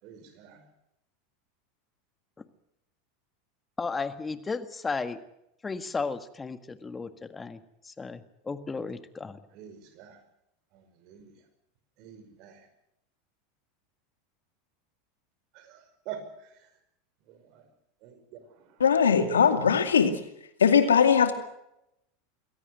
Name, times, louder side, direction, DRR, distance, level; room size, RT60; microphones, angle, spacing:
voice 1, 0.0-0.7 9.5-10.2 11.0-11.3 12.0-12.7 15.5-16.2 17.3-17.6 18.0-18.4, right 9 dB, 55° right, 9 dB, 5.2 m, -45 dB
voice 2, 3.8-5.2 5.6-9.4, left 4 dB, 20° left, 10 dB, 1.7 m, -34 dB
voice 3, 18.8-20.1 20.6-21.3, left 7 dB, 90° left, 8 dB, 2.4 m, -20 dB
23.5 x 17.0 x 7.8 m, 0.81 s
hypercardioid pair, 90°, 0 cm